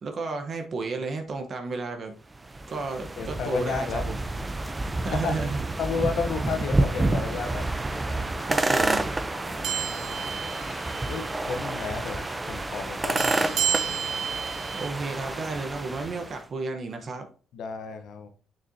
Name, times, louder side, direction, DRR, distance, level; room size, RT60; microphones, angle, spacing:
voice 1, 0.0-2.1 2.7-4.2 5.0-5.6 8.5-9.0 14.7-17.3, right 3 dB, 45° right, 5 dB, 1.0 m, -32 dB
sound 1, 2.3-16.4, right 2 dB, 20° right, 0.6 m, -29 dB
voice 2, 3.2-4.0 5.1-5.5 5.8-7.7 9.4-10.4 11.0-14.0 17.5-18.3, left 5 dB, 75° left, 7 dB, 0.9 m, -33 dB
sound 2, 7.2-16.4, left 3 dB, 45° left, 2.5 m, -48 dB
sound 3, 9.6-11.3 11.6-11.8 13.2-14.9, right 9 dB, 80° right, 0.7 m, -31 dB
6.6 x 6.5 x 2.8 m, 0.39 s
cardioid pair, 110°, 0 cm